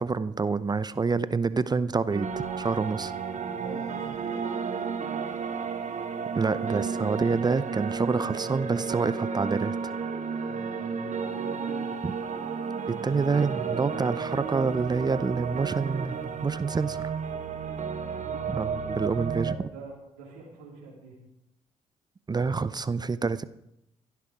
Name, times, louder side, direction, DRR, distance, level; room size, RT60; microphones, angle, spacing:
voice 1, 0.0-3.1 6.3-9.7 12.0-12.1 12.9-17.1 18.6-19.5 22.3-23.4, right 4 dB, 25° right, 16 dB, 0.7 m, -27 dB
sound 1, 2.1-19.5, right 6 dB, 55° right, 1.4 m, -32 dB
voice 2, 3.4-4.4 10.5-11.9 12.9-14.1 18.2-18.7 19.3-21.1, right 4 dB, 90° right, -5 dB, 3.2 m, -45 dB
15.5 x 11.5 x 4.9 m, 0.82 s
hypercardioid pair, 50°, 15 cm